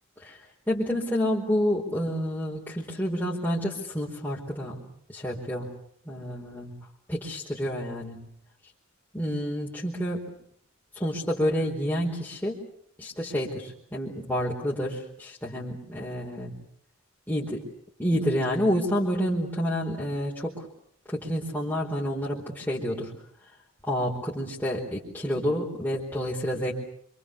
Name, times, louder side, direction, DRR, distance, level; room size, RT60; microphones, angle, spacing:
voice 1, 0.7-4.8 5.1-5.7 6.0-6.7 7.1-8.2 9.1-10.3 10.9-12.6 13.0-16.5 17.3-17.6 18.0-20.7 21.1-23.1 23.9-26.7, equal, 10° left, -6 dB, 4.6 m, -29 dB
29.0 x 26.0 x 7.0 m, 0.65 s
head